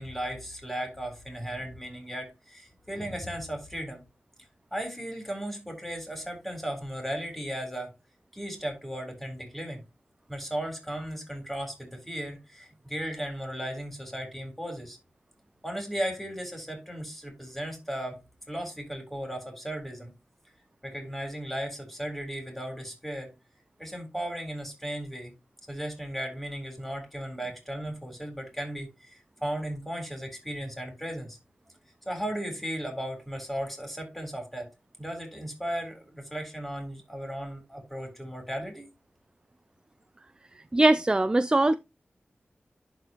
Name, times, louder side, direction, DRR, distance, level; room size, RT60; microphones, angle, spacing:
voice 1, 0.0-4.0 4.7-7.9 8.3-9.8 10.3-15.0 15.6-18.2 18.5-20.1 20.8-23.3 23.8-25.3 25.7-31.4 32.1-34.7 35.0-38.9, right 1 dB, 5° left, 3.7 m, -36 dB
voice 2, 40.7-41.8, right 2 dB, 20° right, 0.4 m, -21 dB
11.5 x 4.1 x 3.0 m
wide cardioid pair, 70°, 4 cm